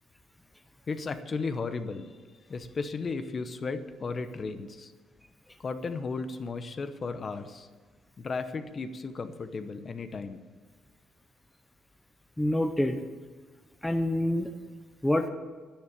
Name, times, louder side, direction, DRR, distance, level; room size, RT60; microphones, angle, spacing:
voice 1, 0.9-2.1 2.5-4.9 5.6-7.7 8.2-10.4, left 4 dB, 30° left, 9 dB, 0.9 m, -35 dB
voice 2, 12.4-13.0 13.8-14.5 15.0-15.3, left 1 dB, 5° left, 6 dB, 0.7 m, -26 dB
10.5 x 10.5 x 8.6 m, 1.5 s
cardioid pair, 155°, 0 cm